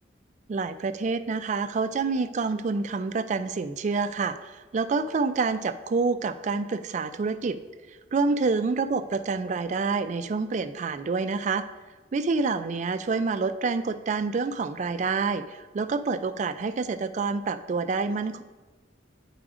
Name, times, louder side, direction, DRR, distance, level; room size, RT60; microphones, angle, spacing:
voice 1, 0.5-7.6 8.1-11.6 12.1-18.4, right 4 dB, 40° right, 12 dB, 0.3 m, -27 dB
9.5 x 4.8 x 3.7 m, 1.3 s
head